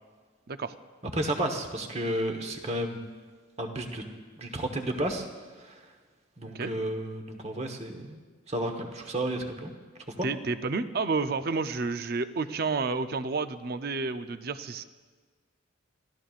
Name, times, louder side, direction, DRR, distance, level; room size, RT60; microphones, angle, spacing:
voice 1, 1.1-3.0 3.6-4.0 4.4-5.3 5.6-5.8 6.4-8.2 8.5-9.7 10.1-10.3, right 1 dB, 30° right, 5 dB, 1.2 m, -32 dB
voice 2, 10.2-14.8, right 4 dB, 50° right, 10 dB, 0.5 m, -30 dB
29.0 x 14.0 x 2.5 m, 1.4 s
head